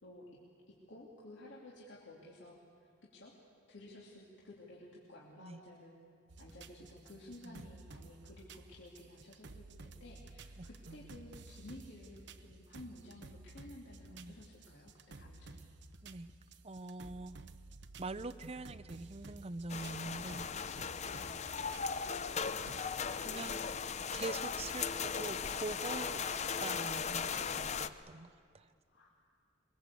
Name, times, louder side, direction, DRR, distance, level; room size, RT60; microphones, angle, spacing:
voice 1, 0.0-0.4 0.7-3.4 3.7-6.0 6.4-15.7 28.9-29.1, left 1 dB, 65° left, -4 dB, 2.8 m, -54 dB
sound 1, 6.3-22.8, right 3 dB, 60° right, 0.9 m, -54 dB
voice 2, 16.6-17.4 18.0-20.5 20.7-20.8 23.2-23.6 24.1-28.7, right 3 dB, 30° right, 15 dB, 0.6 m, -44 dB
sound 2, 19.7-27.9, left 6 dB, 35° left, 0.6 m, -38 dB
23.5 x 23.0 x 8.3 m, 2.2 s
head